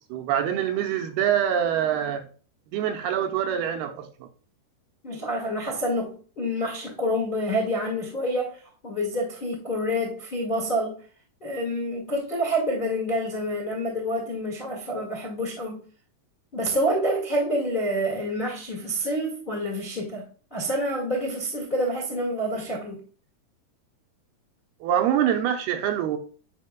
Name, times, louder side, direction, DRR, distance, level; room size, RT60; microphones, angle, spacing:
voice 1, 0.1-2.2 2.7-4.3 24.8-26.2, right 9 dB, 80° right, 2.5 m, -25 dB
voice 2, 5.0-11.0 11.4-15.8 16.5-23.0, equal, 35° left, 0.7 m, -28 dB
11.0 x 5.1 x 2.3 m
omnidirectional pair, 4.7 m